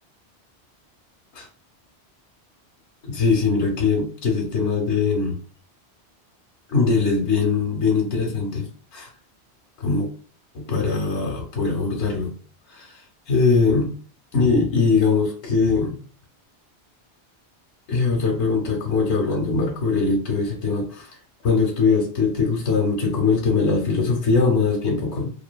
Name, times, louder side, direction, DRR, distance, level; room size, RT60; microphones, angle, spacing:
voice 1, 3.0-5.4 6.7-8.6 8.9-9.1 9.8-10.1 10.5-12.3 12.7-13.0 13.3-13.9 14.3-16.0 17.9-21.1 21.4-25.3, left 4 dB, 85° left, 0 dB, 1.0 m, -21 dB
2.6 x 2.5 x 2.2 m, 0.41 s
omnidirectional pair, 1.1 m